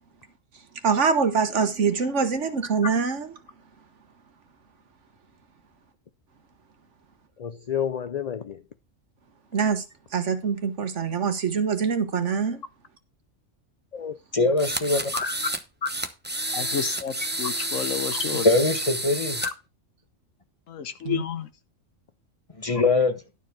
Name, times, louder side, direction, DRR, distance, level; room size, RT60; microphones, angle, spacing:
voice 1, 0.8-3.3 9.5-9.8 10.1-12.6 21.0-21.2, right 5 dB, 65° right, 1.6 m, -24 dB
voice 2, 7.4-8.6 13.9-14.5 15.1-15.4 15.8-15.9 18.1-18.2 19.4-19.5, left 7 dB, 45° left, 0.5 m, -30 dB
voice 3, 14.3-15.1 18.4-19.4 22.6-23.1, left 2 dB, 25° left, 1.6 m, -22 dB
sound 1, 14.6-15.6 15.9-19.5, right 1 dB, 10° right, 0.7 m, -30 dB
voice 4, 16.5-18.5 20.7-21.5, left 8 dB, 75° left, 1.3 m, -30 dB
12.0 x 4.6 x 6.0 m
omnidirectional pair, 1.4 m